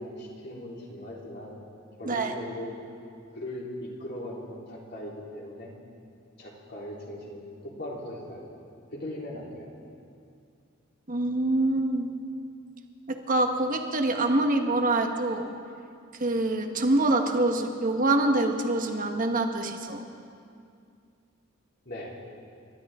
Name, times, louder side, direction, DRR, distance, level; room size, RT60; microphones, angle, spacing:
voice 1, 0.0-1.5 2.0-2.7 3.3-5.7 6.4-8.6 8.9-9.7 21.8-22.2, left 1 dB, 55° left, -4 dB, 3.5 m, -39 dB
voice 2, 11.1-12.1 13.1-15.5 16.2-20.0, right 2 dB, 40° right, 4 dB, 1.3 m, -25 dB
28.5 x 13.0 x 3.7 m, 2.4 s
head